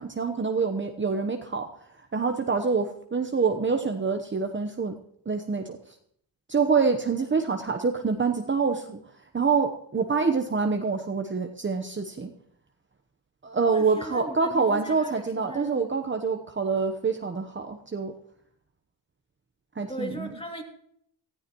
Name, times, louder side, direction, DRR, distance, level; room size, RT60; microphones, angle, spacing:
voice 1, 0.0-1.7 2.1-5.0 5.3-5.8 6.5-9.0 9.3-12.3 13.4-18.1 19.8-20.4, right 5 dB, 25° right, 4 dB, 1.1 m, -26 dB
voice 2, 13.6-16.0 19.9-20.6, equal, 10° left, 3 dB, 2.8 m, -38 dB
18.5 x 13.5 x 3.1 m, 0.69 s
cardioid pair, 75°, 44 cm